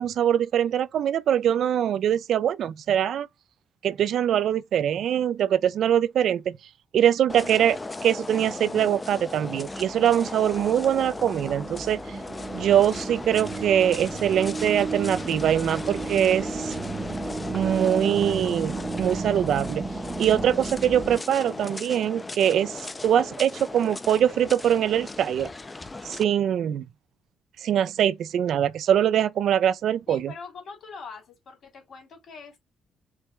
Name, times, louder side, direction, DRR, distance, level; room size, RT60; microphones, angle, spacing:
voice 1, 0.0-3.3 3.8-6.5 6.9-12.0 12.5-16.7 17.5-19.9 20.2-25.5 26.0-26.8 27.6-30.3, right 10 dB, 70° right, 0.3 m, -23 dB
sound 1, 7.3-26.2, left 2 dB, 20° left, 0.4 m, -36 dB
sound 2, 9.2-21.2, right 4 dB, 35° right, 0.6 m, -35 dB
voice 2, 30.1-32.6, left 5 dB, 60° left, 2.6 m, -43 dB
4.6 x 2.1 x 3.3 m
cardioid pair, 90°, 0 cm